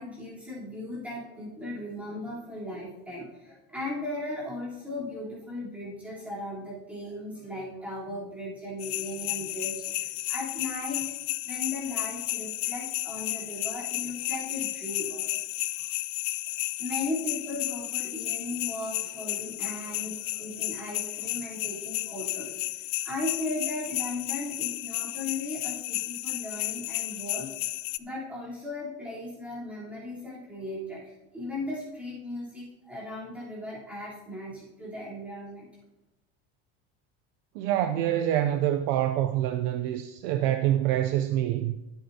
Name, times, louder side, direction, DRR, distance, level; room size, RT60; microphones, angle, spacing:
voice 1, 0.0-11.1 11.4-15.2 15.7-15.8 16.8-22.6 23.0-27.5 28.0-35.7, left 2 dB, 5° right, 3.4 m, -37 dB
sound 1, 8.8-28.0, left 19 dB, 65° left, 0.5 m, -33 dB
voice 2, 37.5-41.8, right 12 dB, 45° right, 0.5 m, -26 dB
21.0 x 8.1 x 2.8 m
cardioid pair, 175°, 33 cm